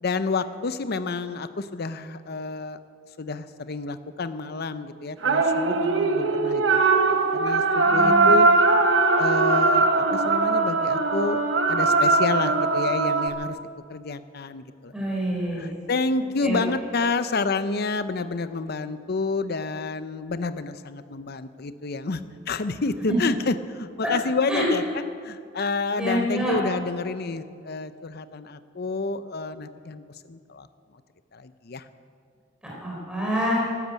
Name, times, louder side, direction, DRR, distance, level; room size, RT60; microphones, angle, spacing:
voice 1, 0.0-2.8 3.2-6.8 7.3-8.5 9.2-11.4 11.7-13.6 13.9-14.9 15.6-24.8 25.2-30.7 31.3-31.9, left 3 dB, 55° left, 12 dB, 0.7 m, -29 dB
sound 1, 5.2-13.3, right 3 dB, 70° right, 1.2 m, -20 dB
voice 2, 7.8-8.3 14.9-15.7 16.4-16.6 23.1-23.2 24.0-24.1 24.5-24.7 26.0-26.6 32.6-33.6, equal, 5° right, -4 dB, 4.0 m, -27 dB
13.5 x 12.0 x 8.2 m, 2.2 s
head